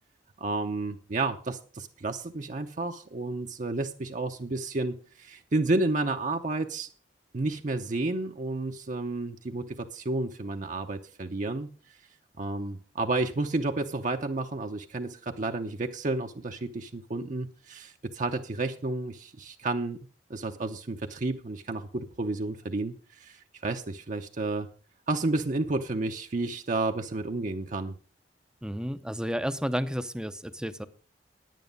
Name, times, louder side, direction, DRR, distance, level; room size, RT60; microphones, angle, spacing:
voice 1, 0.4-6.9 7.3-11.7 12.4-20.0 20.3-24.7 25.1-28.0, right 2 dB, 45° right, 4 dB, 0.7 m, -31 dB
voice 2, 28.6-30.9, equal, 5° right, 11 dB, 0.6 m, -31 dB
10.5 x 9.2 x 5.3 m, 0.39 s
head